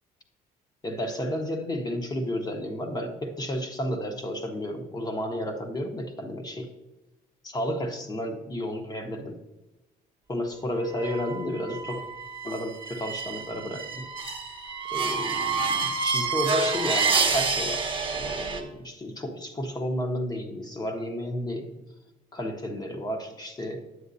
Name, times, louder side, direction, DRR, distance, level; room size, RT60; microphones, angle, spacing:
voice 1, 0.8-6.7 7.4-9.4 10.3-12.1 12.4-14.0 14.9-21.7 22.3-23.8, equal, 25° left, 4 dB, 1.0 m, -32 dB
sound 1, 10.9-18.6, right 4 dB, 30° right, 0.9 m, -28 dB
9.5 x 7.1 x 2.7 m, 1.0 s
cardioid pair, 110°, 17 cm